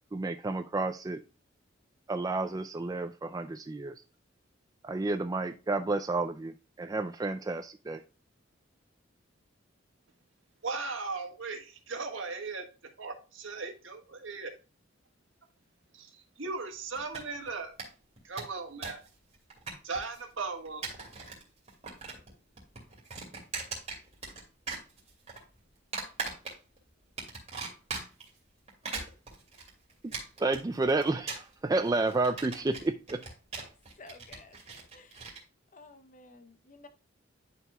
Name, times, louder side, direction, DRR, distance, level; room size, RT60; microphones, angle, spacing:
voice 1, 0.1-1.2 2.1-3.9 4.8-8.0 30.4-33.2, right 3 dB, 20° right, 0.3 m, -31 dB
voice 2, 10.6-14.5 15.9-17.7 18.2-19.0 19.8-20.9, right 4 dB, 85° right, 1.5 m, -38 dB
sound 1, 17.0-17.5 17.8-17.9 18.2-19.1 19.3-20.2 20.7-21.4 21.7-22.3 22.6-24.4 24.7-25.4 25.9-26.8 27.2-28.3 28.7-35.4, right 4 dB, 35° right, 2.6 m, -40 dB
voice 3, 34.0-34.6 34.9-35.2 35.7-36.9, left 3 dB, 40° left, 0.8 m, -53 dB
11.0 x 4.6 x 2.2 m
head